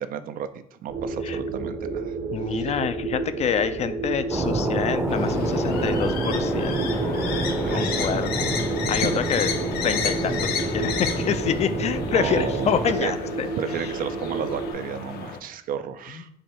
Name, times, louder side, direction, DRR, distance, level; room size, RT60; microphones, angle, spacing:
voice 1, 0.0-2.1 2.5-2.7 7.6-8.1 9.0-9.2 12.1-13.1 13.6-16.3, right 8 dB, 55° right, 11 dB, 0.4 m, -32 dB
sound 1, 0.9-14.7, right 3 dB, 85° right, 1.0 m, -31 dB
voice 2, 2.3-6.8 7.7-8.4 8.9-9.5 9.8-13.5 16.1-16.2, left 8 dB, 40° left, 11 dB, 0.4 m, -27 dB
sound 2, 4.3-13.0, right 2 dB, 15° right, 0.6 m, -28 dB
sound 3, 5.1-15.4, left 7 dB, 70° left, 0.7 m, -32 dB
4.7 x 2.6 x 4.3 m, 0.69 s
cardioid pair, 110°, 17 cm